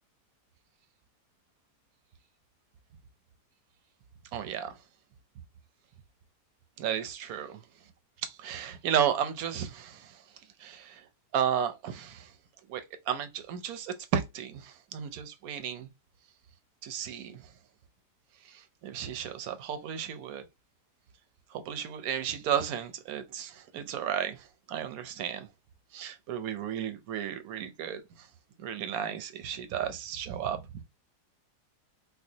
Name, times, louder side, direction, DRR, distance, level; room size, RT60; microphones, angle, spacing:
voice 1, 4.3-4.8 6.8-7.6 8.2-10.2 10.6-11.1 11.3-12.3 12.7-15.9 16.8-17.5 18.4-20.4 21.5-25.5 25.9-28.3 28.6-30.8, right 9 dB, 70° right, 1.0 m, -33 dB
4.4 x 2.3 x 2.6 m
omnidirectional pair, 1.7 m